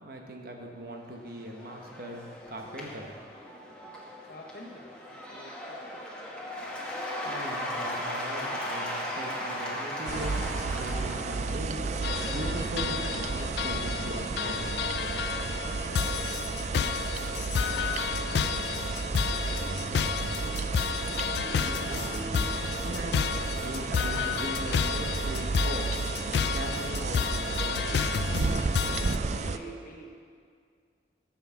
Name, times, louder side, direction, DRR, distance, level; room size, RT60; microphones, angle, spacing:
voice 1, 0.0-3.1 7.2-14.8 21.6-22.2 22.8-26.0 26.3-28.0, right 1 dB, 55° right, 2 dB, 1.1 m, -40 dB
Cheering / Applause / Crowd, 1.0-14.5, left 1 dB, 5° left, 1.2 m, -38 dB
voice 2, 4.2-6.3 15.8-18.6 19.2-20.1 28.4-30.2, equal, 50° left, 1 dB, 1.2 m, -49 dB
sound 1, 10.1-29.6, right 4 dB, 40° right, 0.4 m, -32 dB
sound 2, 12.0-29.2, left 7 dB, 65° left, 0.3 m, -31 dB
9.1 x 7.2 x 5.8 m, 2.2 s
head